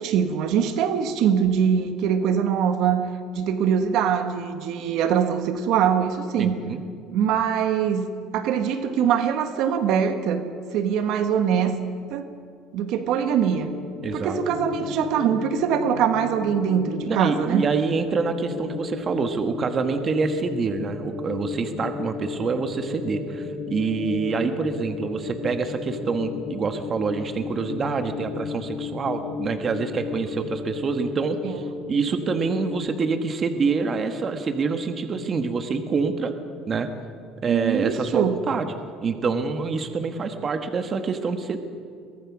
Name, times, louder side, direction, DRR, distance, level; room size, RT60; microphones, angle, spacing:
voice 1, 0.0-3.0 3.3-6.6 7.1-8.1 8.3-11.8 12.1-12.2 12.7-13.7 14.1-17.6 31.4-31.6 37.5-38.4, right 8 dB, 65° right, 8 dB, 1.4 m, -23 dB
voice 2, 6.4-6.8 14.0-14.4 17.1-36.3 36.7-36.9 37.4-38.7 39.0-41.6, right 4 dB, 30° right, 8 dB, 1.4 m, -26 dB
sound 1, 13.5-32.7, left 5 dB, 70° left, 4.1 m, -34 dB
23.0 x 19.0 x 6.1 m, 2.3 s
cardioid pair, 135°, 0 cm